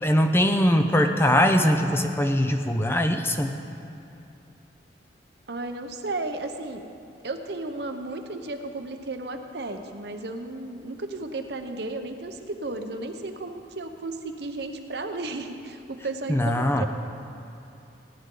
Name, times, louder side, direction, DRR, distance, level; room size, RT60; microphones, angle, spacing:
voice 1, 0.0-3.5 16.3-16.9, equal, 15° left, 5 dB, 0.5 m, -21 dB
voice 2, 5.5-6.8 7.2-16.9, right 2 dB, 65° right, 6 dB, 0.8 m, -34 dB
18.0 x 11.0 x 3.8 m, 2.7 s
head